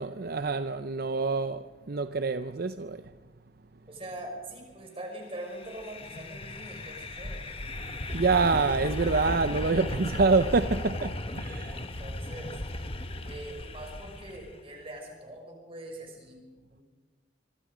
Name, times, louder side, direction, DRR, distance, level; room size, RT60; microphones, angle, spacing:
voice 1, 0.0-3.0 8.1-11.9, right 4 dB, 60° right, 0.7 m, -26 dB
voice 2, 3.9-7.5 11.7-12.6 13.2-16.4 16.7-16.8, right 1 dB, 30° right, 5.8 m, -43 dB
sound 1, 5.4-14.6, left 1 dB, 30° left, 1.3 m, -36 dB
25.0 x 24.0 x 5.1 m
head